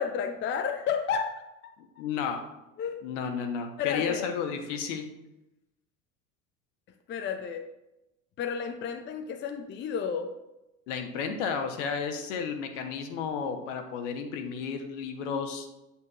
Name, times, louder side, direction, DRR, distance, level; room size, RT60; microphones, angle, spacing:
voice 1, 0.0-1.5 2.8-3.0 3.8-4.3 7.1-7.7 8.4-10.3, left 7 dB, 25° left, 6 dB, 0.6 m, -31 dB
voice 2, 1.8-2.4 3.0-5.0 10.9-15.7, left 6 dB, 60° left, 6 dB, 1.2 m, -32 dB
8.3 x 8.1 x 2.4 m, 0.94 s
figure-of-eight pair, 75°, 41 cm